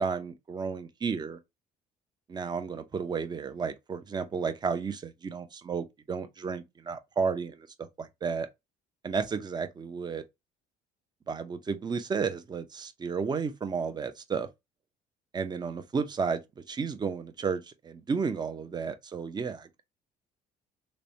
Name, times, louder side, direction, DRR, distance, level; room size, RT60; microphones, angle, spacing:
voice 1, 0.0-1.4 2.3-7.7 8.0-8.5 9.0-10.2 11.3-14.5 15.3-16.4 16.7-19.8, right 5 dB, 25° right, 0.5 m, -32 dB
3.1 x 2.1 x 2.6 m
cardioid pair, 110°, 17 cm